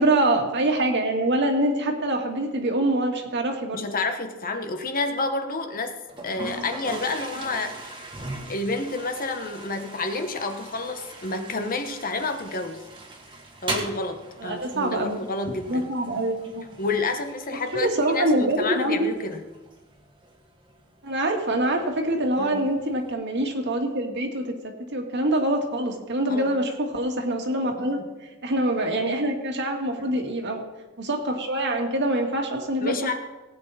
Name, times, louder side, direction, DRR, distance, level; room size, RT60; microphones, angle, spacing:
voice 1, 0.0-3.8 14.4-15.2 15.7-16.6 17.7-19.1 21.0-24.5 24.9-28.0 28.4-30.6 31.0-33.2, right 1 dB, 55° right, 2 dB, 2.0 m, -25 dB
voice 2, 3.7-5.9 6.2-8.0 8.5-12.8 13.6-15.9 16.8-19.4 22.4-22.6 26.3-26.5 27.8-28.1 30.0-30.2 32.8-33.2, left 3 dB, 45° left, 6 dB, 1.1 m, -29 dB
Toilet flush, 6.1-23.1, right 2 dB, 25° right, 1.8 m, -40 dB
18.0 x 8.7 x 4.2 m, 1.2 s
head